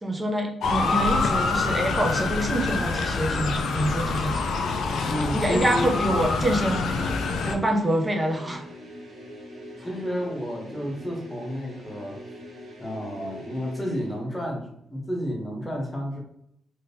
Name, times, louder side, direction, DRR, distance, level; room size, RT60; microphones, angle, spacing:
voice 1, 0.0-4.4 5.3-7.0 7.4-8.6, right 1 dB, 15° right, 2 dB, 0.5 m, -26 dB
Motor vehicle (road) / Siren, 0.6-7.5, left 4 dB, 75° left, 0.4 m, -26 dB
sound 1, 3.9-14.2, equal, 65° right, 0.9 m, -43 dB
voice 2, 5.0-5.9 9.8-12.2 12.8-16.2, equal, 10° left, -1 dB, 0.8 m, -31 dB
3.6 x 2.7 x 2.6 m, 0.73 s
wide cardioid pair, 145°, 0 cm